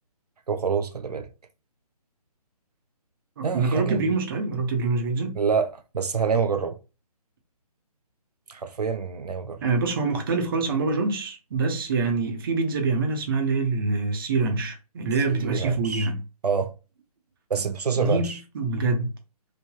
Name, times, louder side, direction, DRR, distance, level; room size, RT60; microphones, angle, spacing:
voice 1, 0.5-1.3 3.4-4.0 5.4-6.8 8.5-9.6 15.3-16.1 16.4-16.7 17.5-18.4, right 6 dB, 85° right, 0.5 m, -26 dB
voice 2, 3.4-5.4 9.6-16.2 18.0-19.1, right 3 dB, 35° right, 0.7 m, -25 dB
3.2 x 2.1 x 2.3 m
figure-of-eight pair, 145°, 20 cm